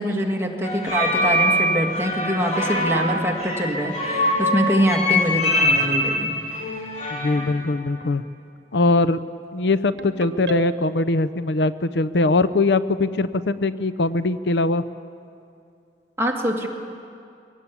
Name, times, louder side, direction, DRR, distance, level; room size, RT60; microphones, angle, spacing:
voice 1, 0.0-6.4 16.2-16.7, equal, 15° right, 0 dB, 2.0 m, -24 dB
sound 1, 0.6-7.6, left 1 dB, 40° left, 3.5 m, -23 dB
voice 2, 7.1-8.2 8.7-9.2 9.5-14.8, left 2 dB, 75° left, 15 dB, 0.6 m, -21 dB
Ringtone, 10.0-11.2, right 4 dB, 75° right, 1.1 m, -32 dB
22.5 x 18.5 x 8.4 m, 2.5 s
head